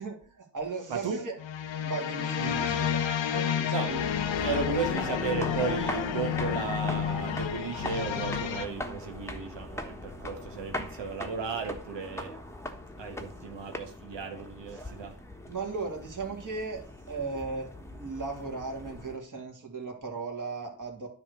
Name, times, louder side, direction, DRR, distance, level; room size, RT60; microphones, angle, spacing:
voice 1, 0.0-1.4 1.8-3.9 15.5-16.8 17.1-21.1, right 4 dB, 45° right, 1 dB, 2.7 m, -37 dB
sound 1, 1.4-8.7, left 8 dB, 85° left, 0.9 m, -30 dB
voice 2, 2.4-2.8 3.7-4.1 4.4-12.4 13.0-15.2, right 5 dB, 75° right, 4 dB, 1.3 m, -35 dB
sound 2, 3.9-19.2, left 1 dB, 5° left, 1.3 m, -40 dB
9.6 x 3.4 x 6.8 m, 0.43 s
cardioid pair, 75°, 44 cm